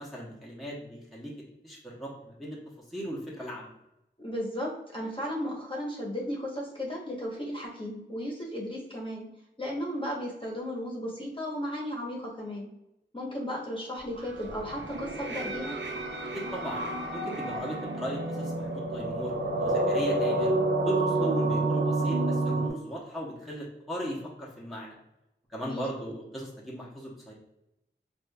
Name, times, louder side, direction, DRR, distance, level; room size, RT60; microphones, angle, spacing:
voice 1, 0.0-1.3 1.6-3.7 16.3-16.8 17.1-20.5 20.8-25.0 25.5-27.3, equal, ahead, -6 dB, 1.0 m, -38 dB
voice 2, 4.2-9.3 9.6-12.7 13.1-15.8 21.2-21.6 25.6-25.8, equal, 25° left, -3 dB, 1.0 m, -35 dB
sound 1, 14.2-22.7, right 2 dB, 70° right, 0.6 m, -29 dB
4.9 x 2.5 x 2.3 m, 0.89 s
wide cardioid pair, 55°, 19 cm